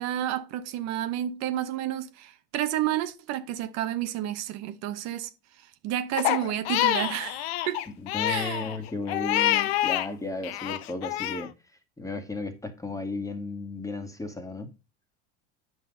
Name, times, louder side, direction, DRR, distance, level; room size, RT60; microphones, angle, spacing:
voice 1, 0.0-5.3 5.6-7.8 8.3-8.7, right 12 dB, 60° right, 1.1 m, -31 dB
Crying sobbing, 6.2-10.1 10.4-11.5, left 14 dB, 80° left, 0.9 m, -27 dB
voice 2, 8.0-11.5 12.0-14.7, left 2 dB, 10° left, 1.8 m, -34 dB
8.8 x 6.1 x 4.0 m
supercardioid pair, 105°, 31 cm